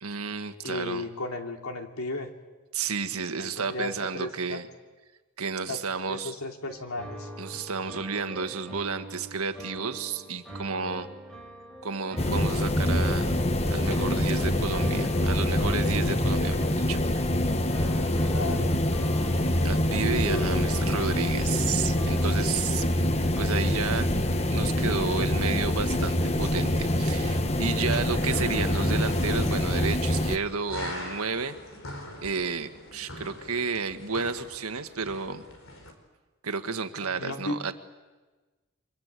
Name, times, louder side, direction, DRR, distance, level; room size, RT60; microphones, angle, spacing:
voice 1, 0.0-1.0 2.7-4.7 5.4-6.3 7.4-11.1 11.8-13.4 13.7-17.2 19.6-22.9 23.4-24.1 24.5-31.6 32.2-35.4 36.4-37.7, right 5 dB, 85° right, 8 dB, 1.7 m, -31 dB
voice 2, 0.6-2.3 3.4-4.6 5.7-5.8 6.1-7.3 18.3-18.7 20.2-21.0 37.0-37.6, left 2 dB, 85° left, 4 dB, 2.8 m, -34 dB
sound 1, 6.7-22.3, right 1 dB, 5° left, 3.9 m, -44 dB
sound 2, 12.2-30.4, left 1 dB, 30° left, 1.1 m, -25 dB
sound 3, 27.6-35.9, left 1 dB, 65° left, 4.4 m, -42 dB
29.0 x 25.0 x 8.3 m, 1.3 s
head